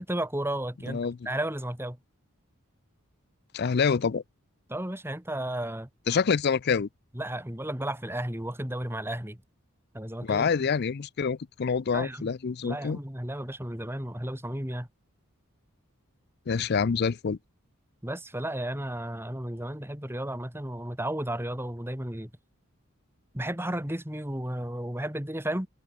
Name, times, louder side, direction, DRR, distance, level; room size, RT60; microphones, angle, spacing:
voice 1, 0.0-2.0 4.7-5.9 7.1-9.4 9.9-10.5 11.9-12.3 12.6-14.9 18.0-22.3 23.3-25.7, right 1 dB, 10° right, 2.5 m, -33 dB
voice 2, 3.5-4.2 6.1-6.9 10.2-13.0 16.5-17.4, left 5 dB, 50° left, 0.4 m, -26 dB
head